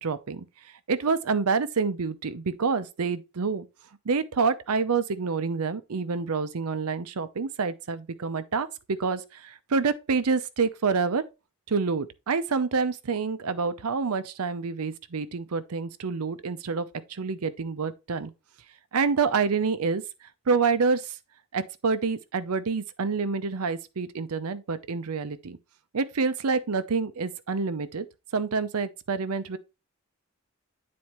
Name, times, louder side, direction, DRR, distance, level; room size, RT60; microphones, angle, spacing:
voice 1, 0.0-0.4 0.9-3.7 4.1-11.2 11.7-18.3 18.9-20.0 20.5-21.1 21.5-25.6 25.9-28.1 28.3-29.6, right 5 dB, 85° right, 0.7 m, -27 dB
9.6 x 4.2 x 3.0 m
head